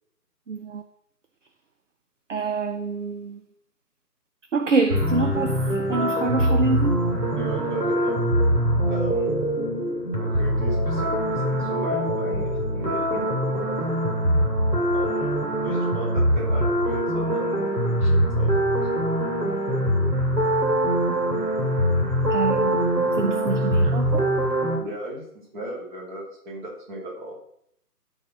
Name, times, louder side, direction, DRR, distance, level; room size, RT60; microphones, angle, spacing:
voice 1, 0.5-0.8 2.3-3.4 4.5-7.1 22.3-24.3, right 3 dB, 50° right, 0.7 m, -26 dB
sound 1, 4.9-24.8, equal, 75° right, 3.2 m, -23 dB
voice 2, 7.3-8.2 8.9-9.3 10.2-13.8 14.9-15.4 15.6-19.0 24.8-27.3, right 1 dB, 30° right, 2.8 m, -36 dB
12.5 x 4.5 x 6.1 m
figure-of-eight pair, 150°, 49 cm